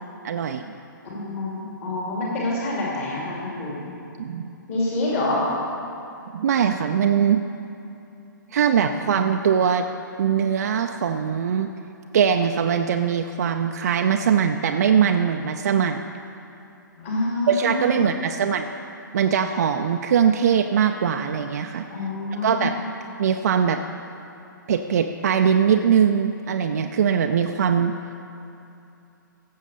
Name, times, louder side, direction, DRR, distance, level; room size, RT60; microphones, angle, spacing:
voice 1, 0.2-0.7 4.2-4.5 6.3-7.5 8.5-9.9 10.2-11.7 12.1-16.1 17.5-18.7 19.1-21.8 22.3-22.8 23.2-23.8 24.7-28.0, right 7 dB, 50° right, 5 dB, 0.5 m, -21 dB
voice 2, 1.0-3.8 4.7-5.4 16.9-18.1 21.9-22.7, left 1 dB, 40° left, -5 dB, 2.8 m, -27 dB
16.0 x 7.1 x 5.4 m, 2.7 s
figure-of-eight pair, 125°, 11 cm